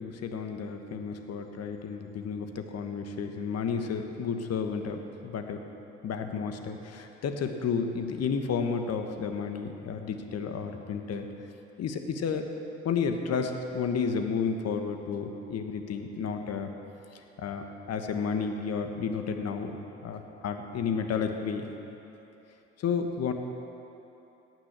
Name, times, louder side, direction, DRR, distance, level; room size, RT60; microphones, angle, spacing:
voice 1, 0.0-5.6 6.0-11.3 11.8-12.4 12.8-16.7 17.1-21.7 22.8-23.3, left 6 dB, 50° left, 6 dB, 1.3 m, -32 dB
17.0 x 6.1 x 7.5 m, 3.0 s
hypercardioid pair, 60°, 34 cm